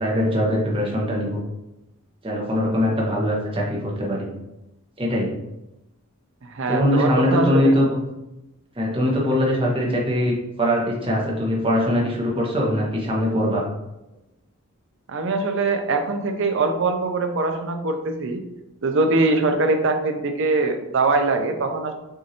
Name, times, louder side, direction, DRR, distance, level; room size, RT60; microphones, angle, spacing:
voice 1, 0.0-1.4 2.2-4.3 5.0-5.3 6.7-8.0 8.8-13.6, equal, 25° right, -3 dB, 1.0 m, -22 dB
voice 2, 6.4-7.8 15.1-18.4 18.8-21.9, right 3 dB, 55° right, 5 dB, 0.6 m, -22 dB
6.3 x 2.6 x 2.8 m, 0.93 s
head